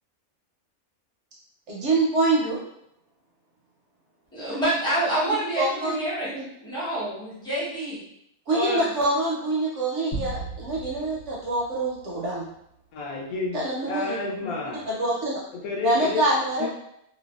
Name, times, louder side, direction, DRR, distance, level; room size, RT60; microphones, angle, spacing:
voice 1, 1.7-2.6 5.6-5.9 6.3-6.4 8.5-12.5 13.5-14.1 14.4-14.5 14.9-15.4 15.8-16.7, right 2 dB, 65° right, -4 dB, 0.7 m, -25 dB
voice 2, 4.3-8.0 8.5-8.8, right 1 dB, 5° left, -9 dB, 0.5 m, -27 dB
sound 1, 10.1-12.6, right 3 dB, 50° left, 1.1 m, -37 dB
voice 3, 12.9-14.9 15.6-16.2 16.6-16.7, left 3 dB, 75° left, -1 dB, 1.0 m, -30 dB
2.5 x 2.2 x 2.2 m, 0.77 s
omnidirectional pair, 1.6 m